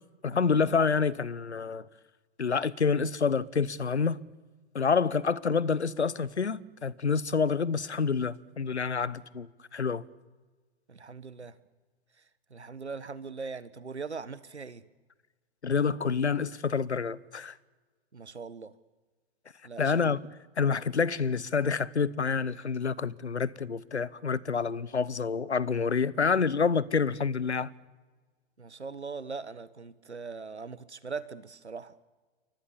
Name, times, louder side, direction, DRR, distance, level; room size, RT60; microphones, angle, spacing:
voice 1, 0.2-1.9 2.4-4.2 4.7-10.0 15.6-17.5 19.8-20.2 20.6-27.7, left 5 dB, 85° left, 1.1 m, -28 dB
voice 2, 10.9-11.6 12.5-14.8 18.1-18.7 19.6-20.2 28.6-31.9, right 4 dB, 90° right, 1.3 m, -40 dB
29.5 x 24.0 x 7.2 m
figure-of-eight pair, 105°, 32 cm